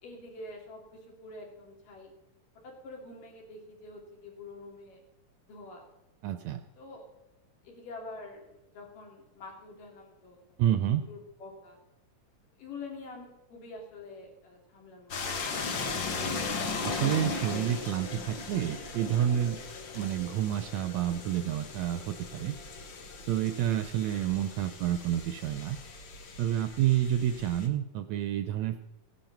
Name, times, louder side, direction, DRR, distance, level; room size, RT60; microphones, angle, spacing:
voice 1, 0.0-2.1 2.6-5.0 5.5-5.9 6.7-7.0 7.6-10.7 11.1-11.8 12.6-15.6, left 3 dB, 80° left, 0 dB, 4.4 m, -46 dB
voice 2, 6.2-6.6 10.6-11.0 16.8-19.6 19.9-22.6 23.3-25.8 26.4-28.8, right 11 dB, 80° right, 9 dB, 1.6 m, -29 dB
sound 1, 15.1-27.7, left 4 dB, 60° left, 1.2 m, -38 dB
17.0 x 10.5 x 5.9 m, 0.94 s
omnidirectional pair, 3.8 m